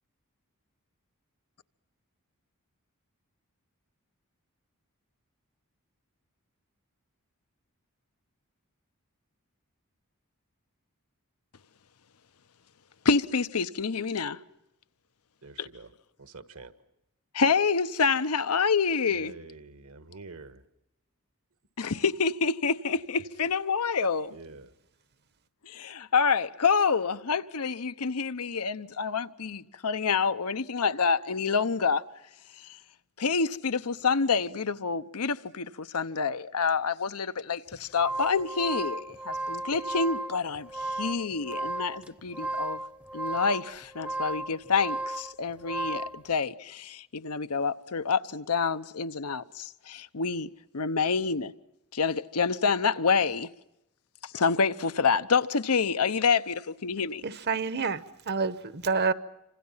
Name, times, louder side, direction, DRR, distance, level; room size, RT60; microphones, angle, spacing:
voice 1, 13.0-14.4 15.6-15.7 17.3-19.3 21.8-24.3 25.6-32.0 33.2-40.7 41.0-42.8 43.1-51.5 51.9-53.5 54.3-57.2, left 5 dB, 85° left, 0.9 m, -27 dB
voice 2, 15.4-15.9 16.3-16.7 19.1-20.5 24.3-24.6, right 3 dB, 70° right, 1.6 m, -46 dB
sound 1, 37.7-46.2, right 2 dB, 5° right, 0.8 m, -35 dB
voice 3, 57.2-59.1, right 4 dB, 50° right, 1.1 m, -28 dB
27.5 x 26.0 x 5.7 m
head